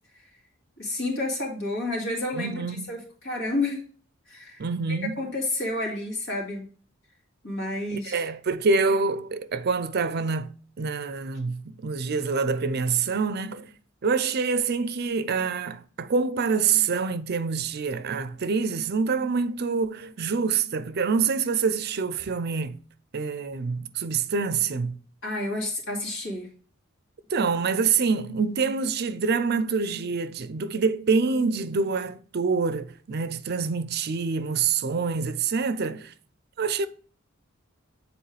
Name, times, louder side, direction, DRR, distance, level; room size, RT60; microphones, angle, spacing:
voice 1, 0.8-3.9 4.3-6.7 7.4-8.2 25.2-26.5 27.4-27.5, left 2 dB, 70° left, 2.4 m, -30 dB
voice 2, 2.3-2.9 4.6-5.2 7.9-13.7 14.0-22.8 23.1-25.0 27.3-36.1 36.6-36.9, right 5 dB, 50° right, 0.5 m, -26 dB
8.0 x 4.4 x 3.3 m
head